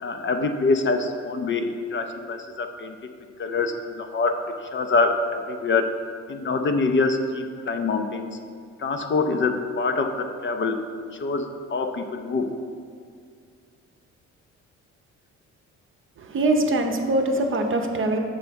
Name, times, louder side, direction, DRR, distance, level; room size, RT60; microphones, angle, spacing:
voice 1, 0.0-3.1 3.4-4.4 4.7-5.9 6.3-8.4 8.8-10.8 11.2-12.5, left 3 dB, 40° left, 6 dB, 0.5 m, -25 dB
voice 2, 16.2-18.2, right 2 dB, 45° right, 4 dB, 0.7 m, -23 dB
7.0 x 3.4 x 5.1 m, 2.2 s
cardioid pair, 90°, 30 cm